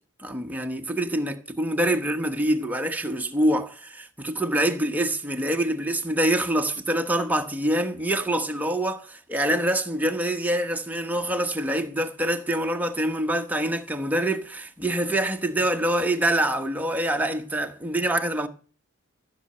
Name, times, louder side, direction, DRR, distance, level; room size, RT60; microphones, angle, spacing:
voice 1, 0.2-18.5, right 1 dB, 10° right, 1.1 m, -25 dB
14.5 x 6.6 x 8.7 m
head